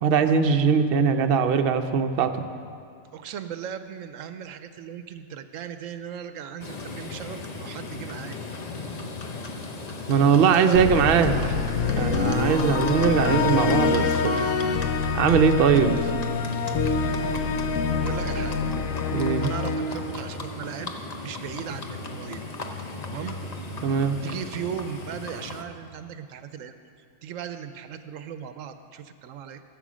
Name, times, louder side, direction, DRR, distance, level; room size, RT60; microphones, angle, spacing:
voice 1, 0.0-2.5 10.1-11.3 12.0-14.5 15.1-16.1 19.1-19.5 23.8-24.2, right 6 dB, 55° right, 6 dB, 0.8 m, -21 dB
voice 2, 3.1-8.4 10.4-11.6 17.9-18.5 19.4-20.9 21.2-22.4 23.0-23.4 24.2-26.7 27.2-29.6, right 8 dB, 80° right, 10 dB, 1.0 m, -37 dB
Livestock farm animals working animals, 6.6-25.6, left 3 dB, 35° left, 0.8 m, -36 dB
sound 1, 10.7-20.9, left 4 dB, 85° left, 1.1 m, -26 dB
15.0 x 7.7 x 6.2 m, 2.3 s
omnidirectional pair, 1.3 m